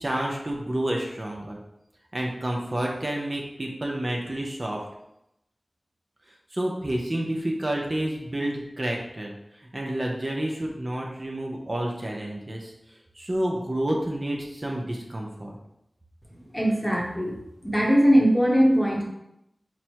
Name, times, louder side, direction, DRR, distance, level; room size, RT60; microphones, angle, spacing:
voice 1, 0.0-1.6 2.1-4.8 6.5-9.3 9.7-12.7 13.2-15.6, right 1 dB, 40° right, -1 dB, 0.6 m, -29 dB
voice 2, 16.3-17.4 17.6-19.0, equal, 15° left, -2 dB, 0.9 m, -21 dB
4.2 x 2.1 x 4.5 m, 0.84 s
wide cardioid pair, 55°, 0 cm